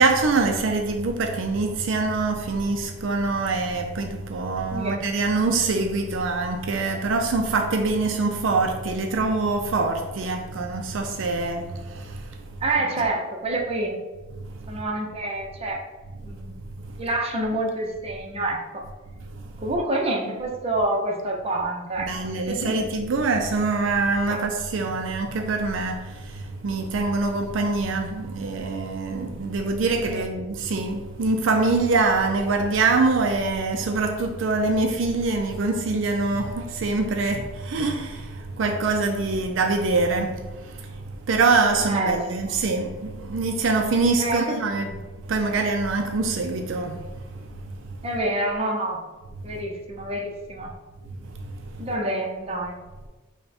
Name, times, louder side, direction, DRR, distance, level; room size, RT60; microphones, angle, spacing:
voice 1, 0.0-12.5 14.4-14.7 16.9-17.0 19.3-19.4 22.0-44.9 45.3-47.7 49.4-49.5 51.3-51.8, right 3 dB, 70° right, 0.4 m, -24 dB
voice 2, 12.6-14.0 14.7-15.8 16.2-18.8 19.6-22.9 24.3-24.4 30.1-30.2 41.8-42.5 44.2-44.5 44.8-45.0 48.0-49.0 49.4-50.7 51.8-52.8, right 2 dB, 30° right, 0.7 m, -28 dB
5.4 x 2.2 x 4.2 m
head